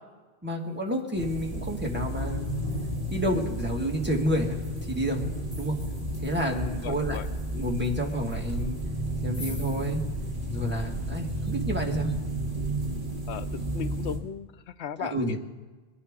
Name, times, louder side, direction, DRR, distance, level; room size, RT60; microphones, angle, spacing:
voice 1, 0.4-2.6 3.1-4.6 4.9-5.2 5.6-5.8 6.2-7.2 7.5-8.8 9.2-10.0 10.5-12.1 15.0-15.4, equal, 10° right, 0 dB, 1.7 m, -29 dB
sound 1, 0.7-1.0 1.4-10.0, left 2 dB, 20° left, 3.0 m, -51 dB
sound 2, 1.1-14.2, right 1 dB, 40° right, 2.9 m, -32 dB
voice 2, 6.7-7.3 13.3-13.5 13.7-15.4, left 8 dB, 90° left, 12 dB, 0.9 m, -36 dB
22.0 x 11.0 x 3.7 m, 1.3 s
omnidirectional pair, 1.1 m